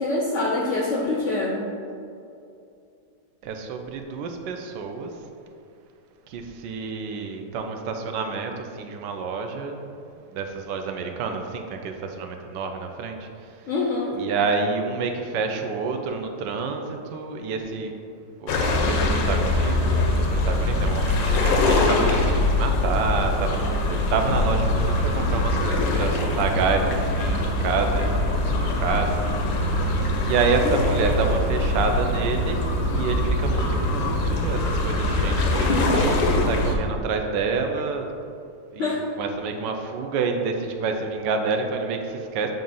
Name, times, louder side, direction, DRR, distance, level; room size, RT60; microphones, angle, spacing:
voice 1, 0.0-1.6 13.7-14.2 38.8-39.0, left 2 dB, 70° left, -2 dB, 0.7 m, -25 dB
voice 2, 3.4-5.2 6.3-9.9 10.3-13.7 14.1-17.9 18.4-29.7 30.2-38.1 38.7-42.5, right 4 dB, 80° right, 4 dB, 1.2 m, -28 dB
sound 1, 18.5-36.7, left 2 dB, 85° left, 1.4 m, -23 dB
sound 2, 24.7-36.0, equal, 35° right, 0.9 m, -35 dB
7.5 x 2.5 x 5.4 m, 2.5 s
omnidirectional pair, 1.9 m